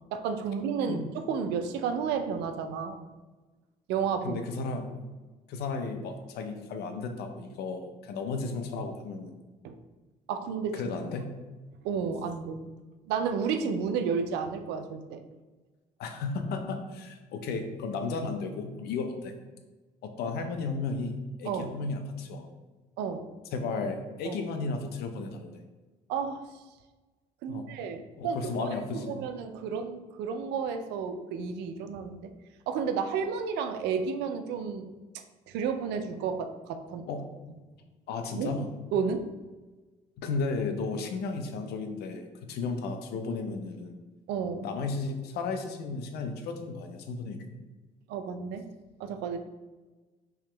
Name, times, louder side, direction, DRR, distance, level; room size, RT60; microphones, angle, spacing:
voice 1, 0.1-3.0 3.9-4.4 9.6-9.8 10.3-10.8 11.8-12.6 13.1-15.2 21.4-21.7 23.0-23.3 24.2-24.4 26.1-26.4 27.4-28.7 28.9-32.3 32.7-34.9 35.5-37.0 38.3-38.5 38.9-39.3 44.3-44.7 48.1-48.6 49.0-49.4, right 6 dB, 85° right, 8 dB, 0.4 m, -31 dB
voice 2, 4.2-5.0 5.5-9.4 10.7-11.3 16.0-19.4 20.0-22.5 23.5-25.6 27.5-27.7 28.2-29.2 37.1-37.3 38.1-38.7 40.2-44.0 44.6-47.6, left 4 dB, 70° left, 6 dB, 0.6 m, -34 dB
3.5 x 2.8 x 3.3 m, 1.2 s
cardioid pair, 110°, 17 cm